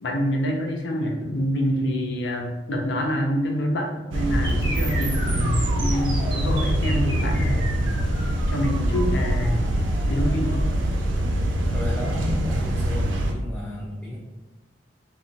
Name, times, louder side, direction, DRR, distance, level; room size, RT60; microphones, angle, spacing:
voice 1, 0.0-7.8 8.5-9.7 10.1-10.7, equal, 70° left, 1 dB, 0.5 m, -26 dB
sound 1, 4.1-13.3, equal, 80° right, 0.4 m, -24 dB
sound 2, 4.4-12.4, right 2 dB, 30° right, 0.6 m, -36 dB
voice 2, 11.7-14.2, equal, ahead, -6 dB, 0.3 m, -32 dB
2.8 x 2.0 x 2.6 m, 1.1 s
head